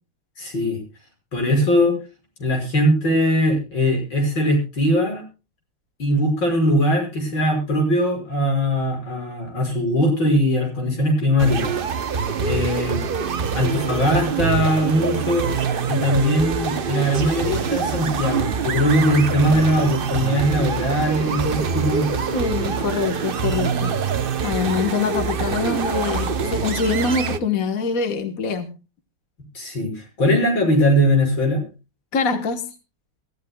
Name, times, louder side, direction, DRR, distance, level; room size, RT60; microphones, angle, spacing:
voice 1, 0.4-0.8 1.3-2.0 2.4-5.2 6.0-11.7 12.4-13.0 13.5-15.5 15.9-22.3 29.5-31.6, equal, 75° left, 2 dB, 6.7 m, -20 dB
sound 1, 11.4-27.4, right 6 dB, 65° right, 0.5 m, -25 dB
voice 2, 22.3-23.9 24.4-28.7 32.1-32.7, left 4 dB, 45° left, 7 dB, 1.7 m, -24 dB
23.0 x 14.5 x 2.3 m, 0.31 s
omnidirectional pair, 2.1 m